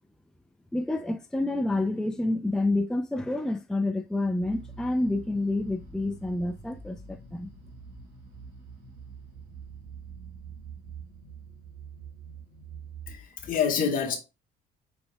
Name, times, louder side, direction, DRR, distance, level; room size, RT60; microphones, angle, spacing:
voice 1, 0.7-7.5, left 2 dB, 5° left, 0.4 m, -28 dB
sound 1, 4.4-13.1, right 5 dB, 80° right, 2.0 m, -45 dB
voice 2, 13.1-14.2, left 7 dB, 55° left, 1.6 m, -27 dB
5.4 x 4.1 x 2.2 m
cardioid pair, 110°, 17 cm